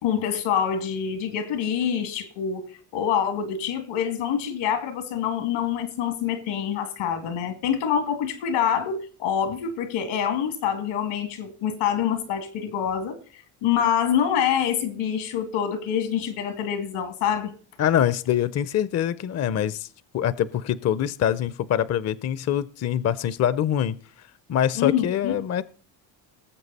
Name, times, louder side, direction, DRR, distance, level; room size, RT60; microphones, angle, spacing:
voice 1, 0.0-2.7 2.9-13.2 13.6-17.5 24.8-25.3, left 8 dB, 85° left, 2.4 m, -26 dB
voice 2, 17.8-19.9 20.1-24.0 24.5-25.6, left 10 dB, 35° left, 0.5 m, -24 dB
19.0 x 7.6 x 4.1 m
cardioid pair, 100°, 47 cm